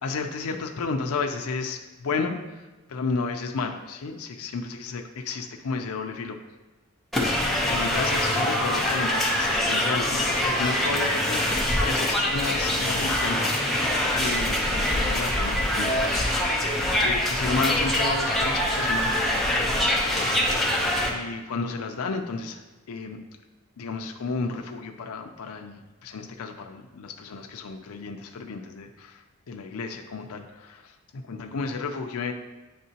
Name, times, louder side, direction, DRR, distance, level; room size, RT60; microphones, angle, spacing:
voice 1, 0.0-2.4 2.9-6.4 7.3-13.5 14.2-16.6 17.0-19.3 20.0-20.6 21.1-22.6 22.9-23.2 23.8-29.1 29.5-30.8 31.3-32.3, left 4 dB, 80° left, 4 dB, 0.5 m, -32 dB
sound 1, 7.1-21.1, left 1 dB, ahead, 0.8 m, -24 dB
9.4 x 3.7 x 2.8 m, 1.2 s
head